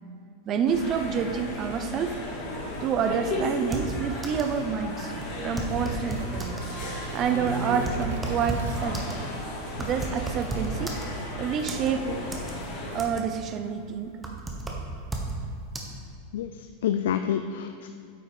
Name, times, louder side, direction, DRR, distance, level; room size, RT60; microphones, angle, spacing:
voice 1, 0.5-2.2 2.8-5.1 5.4-6.6 7.1-9.3 9.8-11.0 11.4-12.1 12.9-14.2, right 7 dB, 30° right, 7 dB, 0.5 m, -28 dB
sound 1, 0.7-13.0, left 1 dB, 40° left, 1.8 m, -34 dB
sound 2, 3.6-4.6 4.8-4.9 5.2-6.7 7.2-11.3 11.7-12.5 12.8-13.4 13.8-15.4 15.7-15.8, right 2 dB, 10° right, 0.9 m, -34 dB
sound 3, 6.0-9.1 11.7-11.8, right 5 dB, 85° right, 0.7 m, -45 dB
voice 2, 16.3-17.9, left 9 dB, 80° left, 8 dB, 0.3 m, -28 dB
8.5 x 5.5 x 4.9 m, 2.4 s
supercardioid pair, 155°, 0 cm